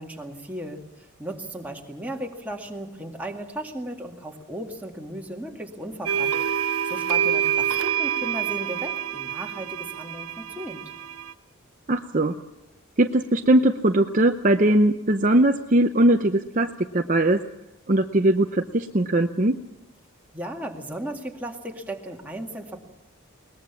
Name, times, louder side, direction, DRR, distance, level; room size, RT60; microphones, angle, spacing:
voice 1, 0.0-6.3 6.8-10.8 20.3-22.8, right 1 dB, 5° right, 1 dB, 2.1 m, -36 dB
sound 1, 6.1-11.3, right 9 dB, 80° right, 0.7 m, -27 dB
voice 2, 11.9-12.3 13.0-17.4 17.9-19.5, right 1 dB, 35° right, 5 dB, 0.7 m, -20 dB
22.0 x 20.0 x 7.2 m, 0.85 s
head